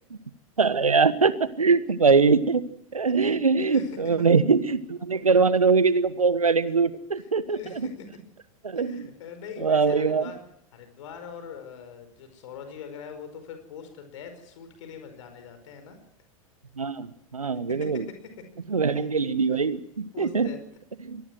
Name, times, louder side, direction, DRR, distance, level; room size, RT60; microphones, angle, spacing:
voice 1, 0.6-2.6 2.9-7.6 8.6-8.9 9.6-10.2 16.8-18.1 18.7-20.5 21.0-21.2, right 5 dB, 85° right, 16 dB, 1.3 m, -22 dB
voice 2, 3.1-4.3 7.1-8.1 8.8-10.4 10.7-16.0 17.7-18.5 18.9-19.1 20.1-20.6, left 6 dB, 65° left, 8 dB, 5.1 m, -42 dB
25.0 x 19.0 x 6.2 m, 0.73 s
figure-of-eight pair, 90°, 18 cm